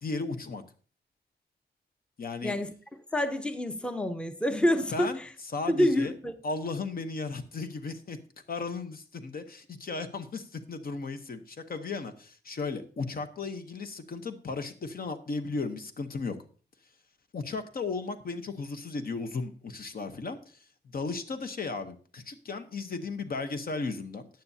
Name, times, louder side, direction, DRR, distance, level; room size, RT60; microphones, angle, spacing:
voice 1, 0.0-0.6 2.2-2.5 4.9-5.2 5.5-6.1 6.4-8.2 8.5-16.4 17.3-20.6 20.9-24.3, left 4 dB, 55° left, 9 dB, 0.9 m, -35 dB
voice 2, 3.1-5.3 5.7-6.3, left 1 dB, 5° left, 9 dB, 0.7 m, -27 dB
14.5 x 9.2 x 2.8 m, 0.40 s
wide cardioid pair, 120°, 18 cm